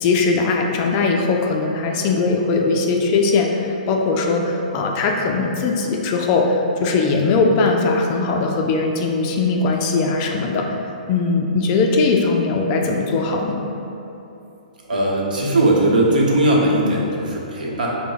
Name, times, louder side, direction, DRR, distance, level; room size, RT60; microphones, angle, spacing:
voice 1, 0.0-10.7 11.1-13.7, left 3 dB, 30° left, 1 dB, 0.3 m, -20 dB
voice 2, 14.9-17.9, right 1 dB, 75° right, -3 dB, 0.8 m, -18 dB
3.9 x 2.1 x 3.9 m, 2.9 s
hypercardioid pair, 150°, 5 cm